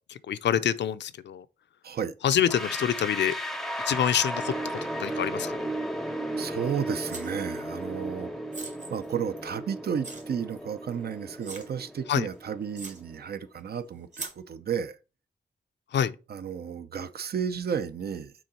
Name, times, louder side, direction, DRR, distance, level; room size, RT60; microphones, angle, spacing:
voice 1, 0.1-1.5 2.2-3.4 3.9-5.6 12.1-12.3 15.9-16.2, left 9 dB, 75° left, 0.5 m, -26 dB
sound 1, 2.5-13.4, right 1 dB, ahead, 0.6 m, -35 dB
voice 2, 6.4-8.3 8.9-15.0 16.3-18.3, right 7 dB, 60° right, 0.6 m, -32 dB
sound 2, 7.1-7.6 8.5-9.6 10.0-10.2 10.9-11.0 11.4-11.7 12.3-12.4 12.8-13.0 14.1-14.4, right 3 dB, 40° right, 1.4 m, -40 dB
6.2 x 3.9 x 4.2 m
wide cardioid pair, 100°, 18 cm